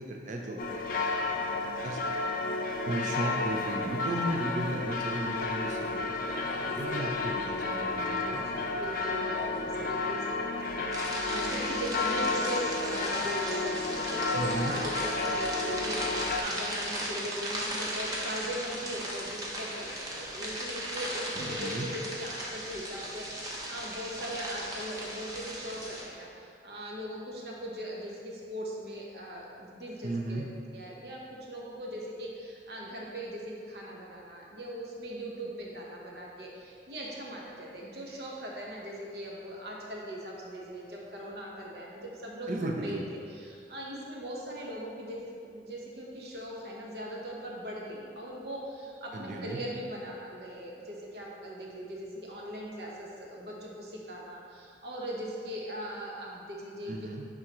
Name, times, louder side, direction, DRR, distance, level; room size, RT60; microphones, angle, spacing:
voice 1, 0.0-1.4 1.8-2.3 2.8-8.4 14.3-14.7 21.3-21.9 30.0-30.4 42.5-43.1 49.1-49.6 56.9-57.2, right 1 dB, 45° right, 1 dB, 0.5 m, -35 dB
sound 1, 0.6-16.4, left 3 dB, 50° left, 0.5 m, -32 dB
voice 2, 6.7-7.3 8.2-30.5 30.7-56.9, equal, 65° right, -3 dB, 1.1 m, -40 dB
sound 2, 10.9-26.0, right 1 dB, 20° right, 0.9 m, -37 dB
10.5 x 3.7 x 3.0 m, 2.4 s
head